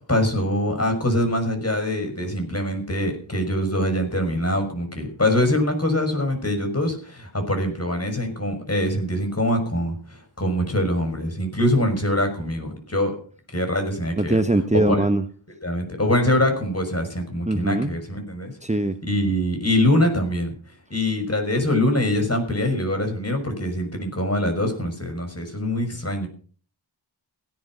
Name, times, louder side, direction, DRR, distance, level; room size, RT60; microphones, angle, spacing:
voice 1, 0.1-13.1 13.5-14.4 14.9-15.0 15.6-18.5 19.0-20.5 20.9-26.3, left 1 dB, 30° left, 6 dB, 6.0 m, -23 dB
voice 2, 14.2-15.2 17.5-17.9 18.6-19.0, right 2 dB, 15° right, 8 dB, 1.1 m, -21 dB
16.5 x 11.0 x 6.2 m, 0.44 s
wide cardioid pair, 50°, 45 cm